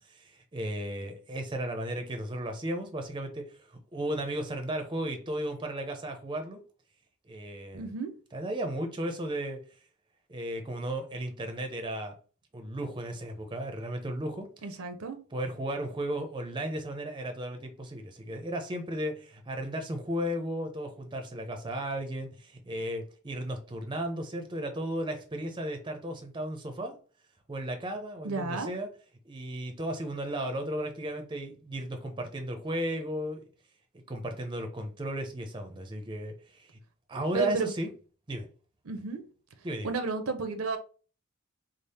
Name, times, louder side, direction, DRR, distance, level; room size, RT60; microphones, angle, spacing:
voice 1, 0.1-6.6 7.2-7.9 8.3-9.6 10.3-12.1 12.5-14.5 15.3-27.0 27.5-28.9 29.3-33.4 33.9-36.8 37.1-37.9 38.3-38.5 39.6-39.9, right 1 dB, 20° right, 0.5 m, -35 dB
voice 2, 7.7-8.1 14.6-15.2 28.2-28.7 37.3-37.7 38.9-39.2 39.8-40.8, right 4 dB, 65° right, 0.6 m, -32 dB
3.4 x 2.0 x 4.1 m
head